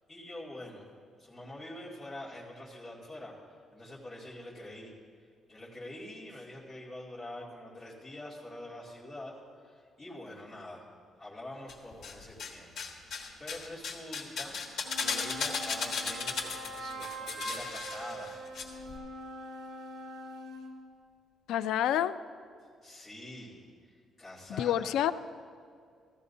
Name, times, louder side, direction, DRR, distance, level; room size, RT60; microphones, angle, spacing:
voice 1, 0.1-0.9 1.2-3.3 3.7-4.9 5.5-9.3 9.6-10.8 11.2-12.7 13.0-18.4 22.8-25.0, left 1 dB, 15° left, -7 dB, 2.4 m, -45 dB
sound 1, 11.7-12.5 12.8-18.6 18.9-19.0, left 5 dB, 65° left, 1.4 m, -36 dB
sound 2, 14.5-20.7, right 1 dB, 80° right, 2.0 m, -43 dB
voice 2, 21.5-22.1 24.5-25.1, left 11 dB, 85° left, 13 dB, 0.3 m, -28 dB
15.5 x 13.5 x 2.7 m, 2.3 s
cardioid pair, 175°, 0 cm